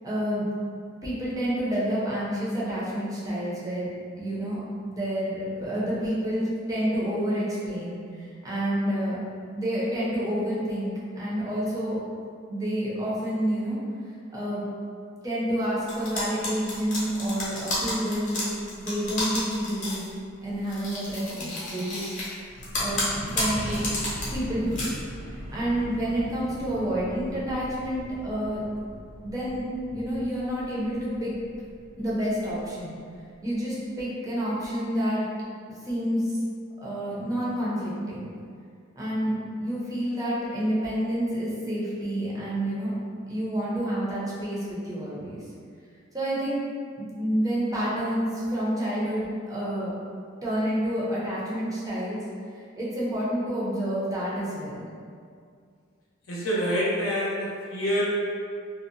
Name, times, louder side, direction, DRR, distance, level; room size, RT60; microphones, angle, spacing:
voice 1, 0.0-0.5 1.0-4.6 4.9-9.2 9.5-12.0 12.5-13.8 14.3-14.6 15.2-18.4 18.8-20.1 20.4-22.1 22.8-23.0 23.3-23.9 24.3-25.0 25.5-28.7 29.2-31.4 32.0-33.0 33.4-35.3 35.8-36.4 36.8-38.3 38.9-42.9 43.3-45.4 46.1-46.6 47.0-49.9 50.4-52.2 52.8-54.9, equal, 15° right, -7 dB, 0.6 m, -29 dB
sound 1, 15.9-20.1 20.7-22.3 22.6-24.3 24.6-24.9, left 2 dB, 40° left, 0.7 m, -31 dB
Accelerating revving vroom, 22.5-33.4, equal, 60° right, 0.6 m, -40 dB
voice 2, 56.3-58.0, equal, 75° left, -7 dB, 0.6 m, -26 dB
2.7 x 2.0 x 2.5 m, 2.2 s
head